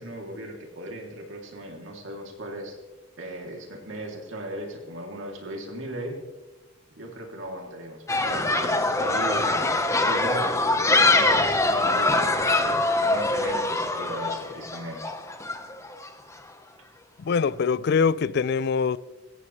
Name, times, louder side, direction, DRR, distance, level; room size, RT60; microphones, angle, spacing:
voice 1, 0.0-2.8 3.2-6.2 7.0-15.0, right 1 dB, 70° right, 3.0 m, -37 dB
sound 1, 8.1-16.1, left 2 dB, 15° left, 1.1 m, -23 dB
voice 2, 17.2-19.0, left 5 dB, 55° left, 0.4 m, -23 dB
16.0 x 15.5 x 3.3 m
head